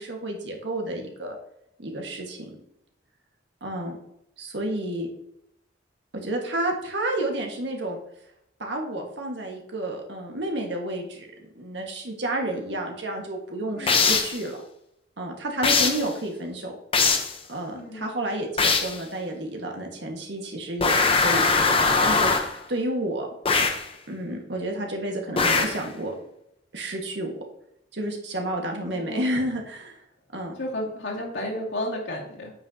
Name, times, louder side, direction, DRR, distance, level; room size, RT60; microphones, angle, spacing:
voice 1, 0.0-1.3 1.8-2.5 3.6-4.0 4.4-5.1 6.1-8.0 8.6-14.6 15.2-16.7 17.5-23.3 24.1-26.1 26.7-27.3 27.9-30.0 30.3-30.5, right 1 dB, 70° right, 1 dB, 1.6 m, -30 dB
voice 2, 13.7-14.1 17.7-18.1 28.9-29.4 30.6-32.5, left 1 dB, 80° left, -3 dB, 2.3 m, -32 dB
sound 1, 13.9-14.4 15.6-16.1 16.9-17.4 18.6-19.0 20.8-22.6 23.4-23.9 25.4-25.8, left 4 dB, 30° left, 0.8 m, -21 dB
8.8 x 6.0 x 2.8 m, 0.80 s
head